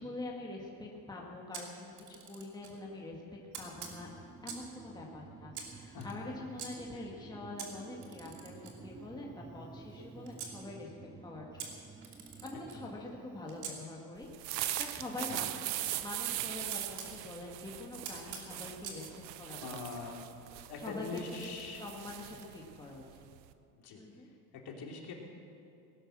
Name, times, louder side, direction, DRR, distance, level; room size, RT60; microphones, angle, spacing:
voice 1, 0.0-4.1 4.4-10.9 11.2-11.7 12.4-14.3 14.8-19.1 19.4-19.8 20.8-23.2 23.9-24.3, left 2 dB, 10° left, -2 dB, 2.0 m, -45 dB
Camera, 1.5-2.8 3.5-4.8 5.5-6.7 7.6-10.6 11.6-13.8 14.8-17.1 18.0-19.0, right 6 dB, 50° right, 2.9 m, -47 dB
sound 1, 3.7-13.2, right 4 dB, 10° right, 0.4 m, -52 dB
voice 2, 5.9-6.3 12.7-12.9 15.3-15.5 19.6-20.2 20.7-21.8 23.8-24.0 24.5-25.1, left 4 dB, 50° left, 0 dB, 3.1 m, -43 dB
sound 2, 14.2-23.5, right 14 dB, 90° right, 0.9 m, -40 dB
18.5 x 11.0 x 6.3 m, 2.8 s
supercardioid pair, 100°, 49 cm